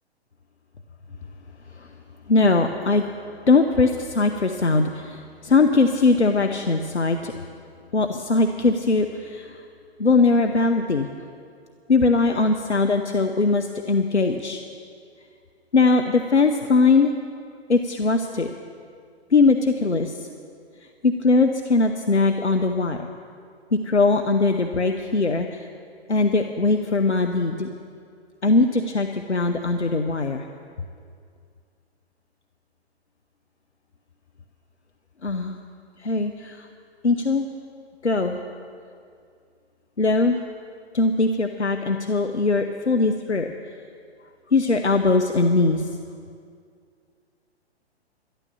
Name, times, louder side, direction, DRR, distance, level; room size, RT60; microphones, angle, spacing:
voice 1, 2.3-3.0 3.5-7.3 7.9-9.6 10.0-11.1 11.9-14.6 15.7-17.1 17.7-18.5 19.3-20.3 21.0-23.1 23.7-25.6 26.1-27.7 28.4-30.4 35.2-35.6 36.0-36.7 37.0-37.5 38.0-38.4 40.0-40.4 40.9-43.5 44.5-45.9, left 3 dB, 90° left, 5 dB, 0.8 m, -20 dB
12.5 x 11.5 x 7.1 m, 2.3 s
figure-of-eight pair, 120°, 33 cm